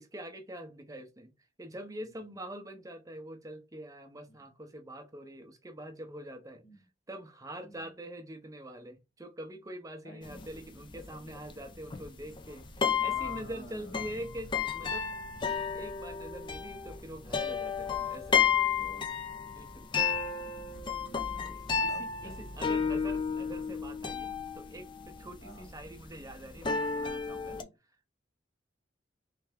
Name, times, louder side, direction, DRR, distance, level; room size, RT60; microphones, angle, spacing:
voice 1, 0.0-1.3 1.6-6.6 7.1-15.1 15.7-18.4 19.5-19.9 21.8-27.6, right 1 dB, 20° right, 0.7 m, -44 dB
voice 2, 2.0-2.4 4.3-4.4 6.6-6.8 7.6-7.9 10.0-10.5 12.5-12.6 13.0-14.2 18.5-19.1 21.3-22.9 25.4-25.7 27.5-27.7, equal, 55° left, 1.5 m, -51 dB
sound 1, 10.2-27.6, left 6 dB, 25° left, 0.4 m, -32 dB
3.3 x 3.3 x 3.4 m
head